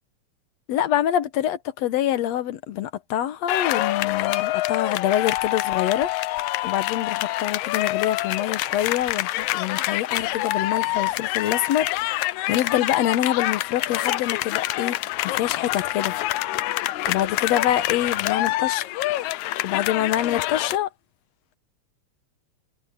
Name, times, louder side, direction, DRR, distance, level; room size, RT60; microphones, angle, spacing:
voice 1, 0.7-6.1 6.6-15.0 15.2-16.1 17.1-18.9 19.6-20.9, left 11 dB, 70° left, 2.1 m, -25 dB
sound 1, 3.5-20.8, left 16 dB, 90° left, 2.0 m, -26 dB
sound 2, 9.9-19.1, right 5 dB, 70° right, 4.8 m, -51 dB
omnidirectional pair, 3.3 m